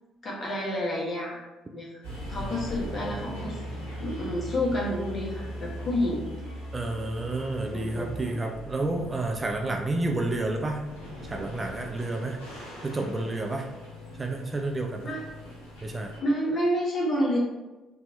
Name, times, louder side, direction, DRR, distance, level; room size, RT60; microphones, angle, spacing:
voice 1, 0.2-1.4 1.7-1.9 2.3-3.6 4.0-6.3 7.7-8.2 9.6-9.7 15.0-15.3 16.2-17.4, equal, 35° left, -3 dB, 1.3 m, -29 dB
sound 1, 2.0-16.2, equal, 75° left, 1.1 m, -40 dB
voice 2, 6.7-10.9 11.2-12.4 12.8-13.7 14.2-15.1 15.8-16.1, right 2 dB, 25° right, 2 dB, 0.4 m, -30 dB
4.2 x 2.7 x 3.2 m, 1.1 s
figure-of-eight pair, 45°, 0 cm